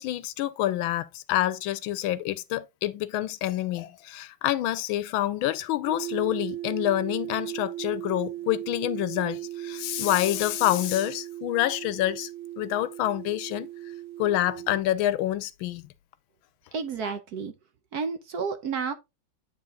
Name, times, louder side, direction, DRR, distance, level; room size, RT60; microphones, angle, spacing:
voice 1, 0.0-12.3 12.6-13.7 14.2-15.9, left 14 dB, 80° left, 1.4 m, -27 dB
sound 1, 5.9-14.8, right 14 dB, 80° right, 1.6 m, -37 dB
voice 2, 16.7-17.5 17.9-18.9, right 5 dB, 60° right, 1.1 m, -31 dB
8.8 x 4.0 x 3.7 m
omnidirectional pair, 2.2 m